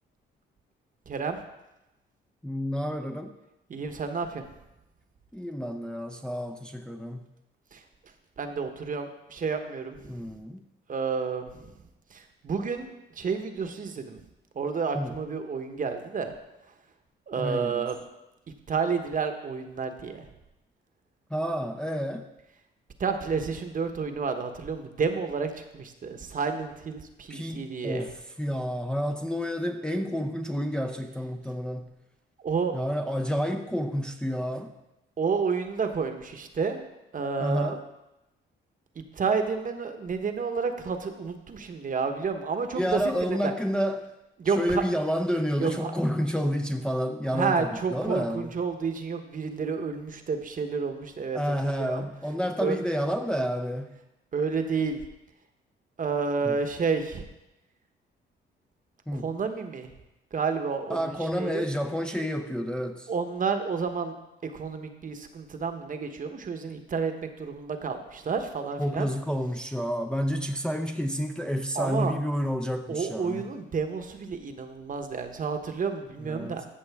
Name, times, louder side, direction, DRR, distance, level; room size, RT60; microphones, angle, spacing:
voice 1, 1.1-1.4 3.7-4.4 7.7-7.8 8.4-10.2 10.9-11.7 12.1-12.9 13.2-14.2 14.5-16.3 17.3-18.0 18.7-20.3 23.0-28.1 32.4-32.7 35.2-36.8 37.1-37.8 39.0-43.5 44.4-44.8 45.6-45.9 47.3-52.0 52.6-52.8 54.3-55.0 56.0-57.3 59.1-59.9 60.3-61.6 63.1-64.1 64.4-69.1 71.7-72.1 72.9-76.7, right 5 dB, 40° right, 6 dB, 1.1 m, -30 dB
voice 2, 2.4-3.3 5.3-7.3 10.1-10.6 14.9-15.2 17.4-17.9 21.3-22.3 27.3-32.0 32.7-34.8 37.4-37.8 42.7-44.1 44.4-48.5 51.3-53.9 56.4-56.6 59.1-59.3 60.9-63.1 68.8-73.5 76.2-76.7, equal, 5° left, 4 dB, 0.6 m, -30 dB
14.0 x 6.4 x 3.5 m, 0.94 s
cardioid pair, 90°, 20 cm